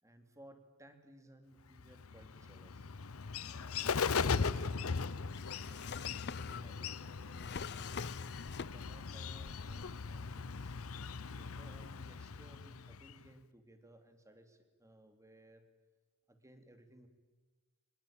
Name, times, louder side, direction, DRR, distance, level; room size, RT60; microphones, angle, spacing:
voice 1, 0.0-2.9 3.5-5.1 5.4-8.0 8.7-10.8 11.2-15.6 16.3-17.1, right 1 dB, 15° right, 7 dB, 2.9 m, -60 dB
Bird, 1.8-13.3, left 5 dB, 80° left, 0.8 m, -39 dB
Drawer open or close, 4.7-9.1 9.4-10.2, left 6 dB, 55° left, 0.7 m, -47 dB
25.0 x 21.0 x 8.8 m, 1.4 s
head